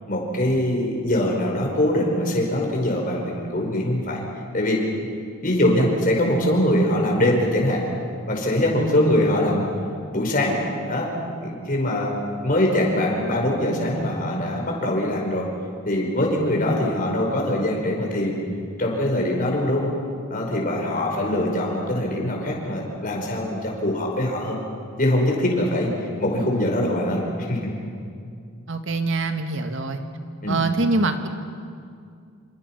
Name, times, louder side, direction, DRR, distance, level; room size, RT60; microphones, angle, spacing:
voice 1, 0.1-4.2 4.5-4.8 5.4-7.8 8.3-9.6 10.1-10.6 10.8-11.1 11.4-12.1 12.4-15.5 15.9-18.4 18.8-19.9 20.3-24.6 25.0-25.9 26.2-27.7 30.4-30.6, left 1 dB, 40° left, -1 dB, 5.1 m, -22 dB
voice 2, 28.7-30.0 30.5-31.3, right 3 dB, 60° right, 6 dB, 1.8 m, -24 dB
27.5 x 27.5 x 6.0 m, 2.3 s
head